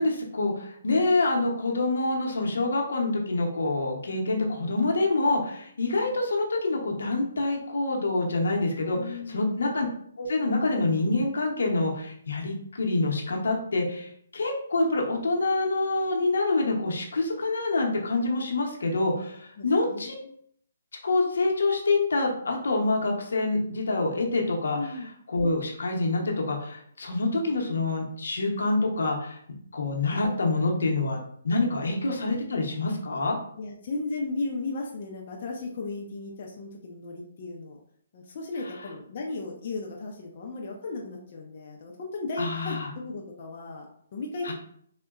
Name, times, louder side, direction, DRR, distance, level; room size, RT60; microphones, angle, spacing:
voice 1, 0.0-9.9 10.2-20.2 21.0-25.0 25.3-29.4 29.7-33.4 42.4-42.9 44.4-44.5, left 2 dB, 80° left, 1 dB, 0.7 m, -26 dB
voice 2, 8.9-9.5 19.6-20.3 24.7-25.1 33.6-37.8 38.1-44.5, left 3 dB, 45° left, -1 dB, 0.4 m, -35 dB
3.7 x 2.1 x 2.3 m, 0.65 s
hypercardioid pair, 160°, 0 cm